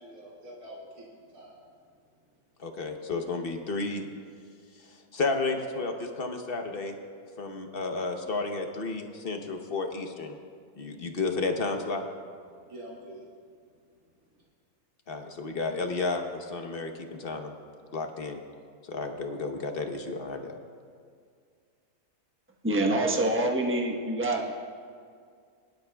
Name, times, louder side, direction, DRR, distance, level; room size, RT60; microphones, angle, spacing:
voice 1, 0.0-1.6 12.5-13.3 14.4-14.5, equal, 65° right, -5 dB, 2.7 m, -46 dB
voice 2, 2.6-4.0 4.8-6.9 7.4-10.4 10.8-12.1 15.1-17.5 17.9-18.4 18.9-20.6, left 3 dB, 40° left, 4 dB, 1.0 m, -32 dB
voice 3, 22.6-24.5, right 1 dB, 10° right, 0 dB, 1.0 m, -26 dB
23.5 x 12.0 x 2.3 m, 2.2 s
omnidirectional pair, 1.6 m